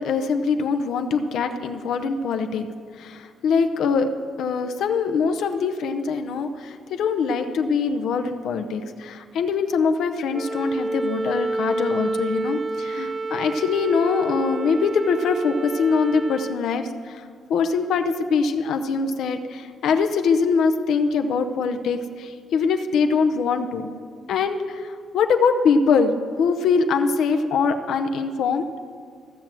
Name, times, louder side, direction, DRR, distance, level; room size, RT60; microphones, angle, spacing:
voice 1, 0.0-2.6 2.9-4.1 4.4-23.9 24.3-28.7, left 5 dB, 75° left, 6 dB, 0.7 m, -23 dB
Wind instrument woodwind instrument, 10.3-16.6, right 2 dB, 15° right, 0.5 m, -29 dB
15.5 x 6.0 x 7.6 m, 2.1 s
cardioid pair, 90°, 0 cm